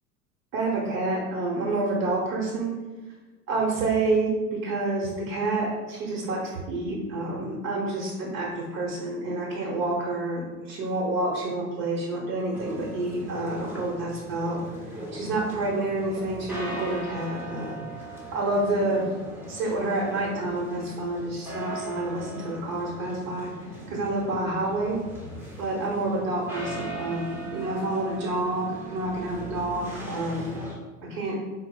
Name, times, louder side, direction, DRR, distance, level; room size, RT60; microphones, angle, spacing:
voice 1, 0.5-2.7 3.5-14.6 14.9-17.8 18.3-19.1 19.5-23.5 23.9-25.0 25.6-30.5 31.1-31.4, right 2 dB, 45° right, -4 dB, 1.0 m, -28 dB
sound 1, 12.5-30.7, right 1 dB, 5° right, 0.8 m, -39 dB
4.1 x 2.1 x 3.7 m, 1.2 s
figure-of-eight pair, 85°, 47 cm